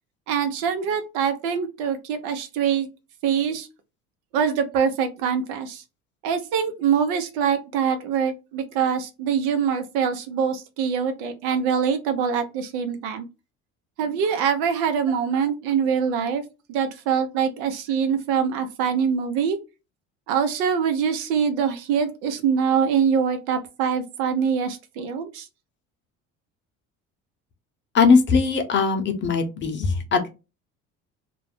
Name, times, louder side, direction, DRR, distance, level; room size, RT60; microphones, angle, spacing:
voice 1, 0.3-2.9 3.2-3.7 4.3-5.8 6.2-13.3 14.0-16.4 16.7-19.6 20.3-25.4, right 7 dB, 90° right, 8 dB, 0.7 m, -24 dB
voice 2, 27.9-30.3, left 5 dB, 40° left, 6 dB, 0.7 m, -20 dB
2.4 x 2.0 x 3.4 m, 0.27 s
cardioid pair, 110°, 30 cm